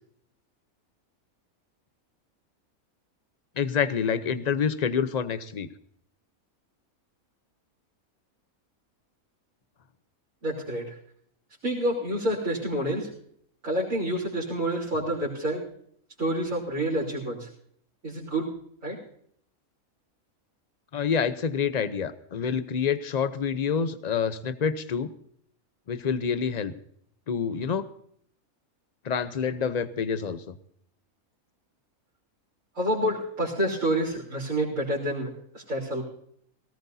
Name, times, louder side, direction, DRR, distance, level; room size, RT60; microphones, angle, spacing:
voice 1, 3.6-5.7 20.9-25.1 25.9-26.7 27.3-27.9 29.0-30.5, left 6 dB, 40° left, 13 dB, 0.6 m, -27 dB
voice 2, 10.4-10.9 11.6-13.1 13.6-15.6 16.2-17.5 18.0-18.5 18.8-19.0 32.8-36.0, right 1 dB, 60° right, -8 dB, 4.0 m, -28 dB
18.5 x 17.5 x 2.7 m, 0.65 s
omnidirectional pair, 1.5 m